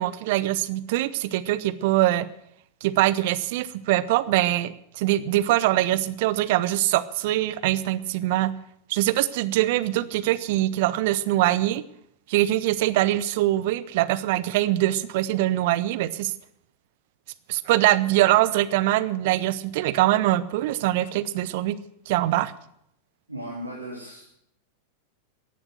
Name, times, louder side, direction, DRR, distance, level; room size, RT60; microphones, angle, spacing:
voice 1, 0.0-2.3 2.8-8.5 8.9-11.8 12.3-16.3 17.5-21.8 22.1-22.5, right 15 dB, 50° right, 17 dB, 0.8 m, -23 dB
voice 2, 23.3-24.4, right 1 dB, 85° right, -5 dB, 3.2 m, -37 dB
15.0 x 11.0 x 6.2 m, 0.74 s
figure-of-eight pair, 90°, 0 cm